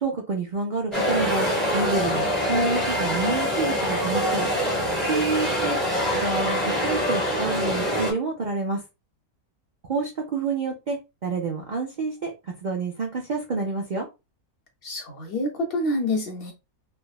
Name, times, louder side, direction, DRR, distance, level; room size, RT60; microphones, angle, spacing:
voice 1, 0.0-1.5 1.7-4.5 5.1-5.8 6.1-8.8 9.9-12.3 12.6-14.1, right 4 dB, 55° right, 0.5 m, -28 dB
sound 1, 0.9-8.1, equal, ahead, 0.7 m, -24 dB
voice 2, 14.8-16.5, left 1 dB, 55° left, 0.6 m, -27 dB
3.3 x 2.0 x 2.3 m
omnidirectional pair, 1.5 m